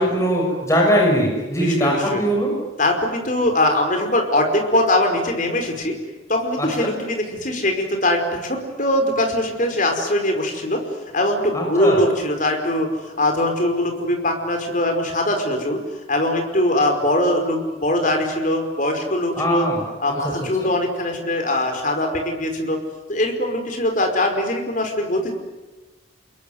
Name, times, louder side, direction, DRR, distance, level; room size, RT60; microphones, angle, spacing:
voice 1, 0.0-2.5 6.6-6.9 11.5-12.0 19.4-19.8 20.1-20.2 20.6-20.7, equal, 15° left, -1 dB, 6.6 m, -20 dB
voice 2, 1.5-2.2 2.8-6.0 6.3-10.8 11.1-15.8 16.1-19.7 20.0-22.8 23.1-25.3, left 1 dB, 40° left, 4 dB, 5.2 m, -21 dB
28.0 x 22.5 x 9.6 m, 1.2 s
head